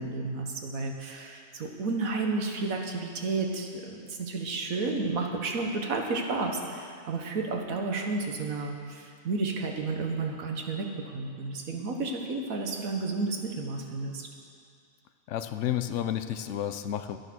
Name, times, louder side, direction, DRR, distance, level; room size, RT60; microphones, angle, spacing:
voice 1, 0.0-14.3, right 3 dB, 85° right, 2 dB, 1.6 m, -32 dB
voice 2, 15.3-17.2, left 11 dB, 70° left, 10 dB, 0.9 m, -31 dB
11.5 x 9.8 x 6.1 m, 2.3 s
omnidirectional pair, 1.4 m